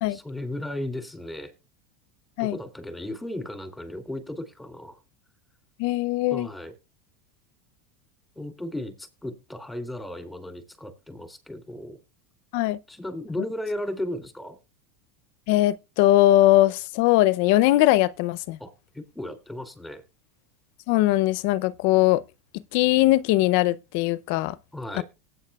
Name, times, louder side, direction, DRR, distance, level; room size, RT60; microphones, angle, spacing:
voice 1, 0.1-1.5 2.4-5.0 6.3-6.7 8.4-12.0 12.9-14.6 18.6-20.0 24.7-25.0, left 1 dB, 5° left, 2.7 m, -35 dB
voice 2, 5.8-6.5 12.5-12.8 15.5-18.6 20.9-22.2 22.7-24.6 24.9-25.0, left 16 dB, 65° left, 0.5 m, -20 dB
18.5 x 9.0 x 2.3 m
hypercardioid pair, 105°, 0 cm